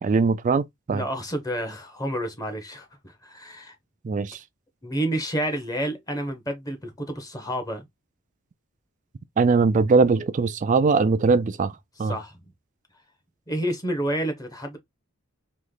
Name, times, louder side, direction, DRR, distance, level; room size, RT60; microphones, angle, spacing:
voice 1, 0.0-1.0 4.0-4.4 9.4-11.7 12.0-12.2, right 4 dB, 35° right, 0.3 m, -21 dB
voice 2, 0.9-3.8 4.8-7.8 12.1-12.4 13.5-14.8, right 1 dB, 15° left, 1.0 m, -29 dB
3.2 x 3.1 x 3.8 m
head